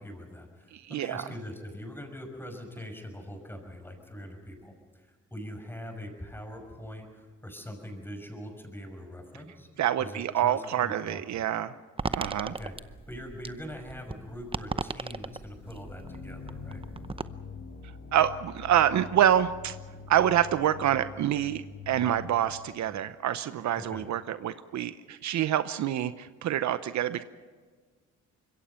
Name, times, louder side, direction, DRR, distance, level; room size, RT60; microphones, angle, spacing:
voice 1, 0.0-9.7 10.0-11.4 12.5-12.7 13.1-16.8 23.8-24.1, equal, 5° left, 4 dB, 5.9 m, -42 dB
voice 2, 0.7-1.2 9.8-11.7 12.1-12.5 18.1-19.7 20.1-27.2, right 11 dB, 70° right, 13 dB, 0.8 m, -27 dB
sound 1, 12.0-17.3, right 4 dB, 20° right, 0.7 m, -37 dB
sound 2, 15.3-23.1, left 5 dB, 85° left, 6.0 m, -45 dB
25.5 x 22.0 x 5.8 m, 1.5 s
cardioid pair, 90°, 30 cm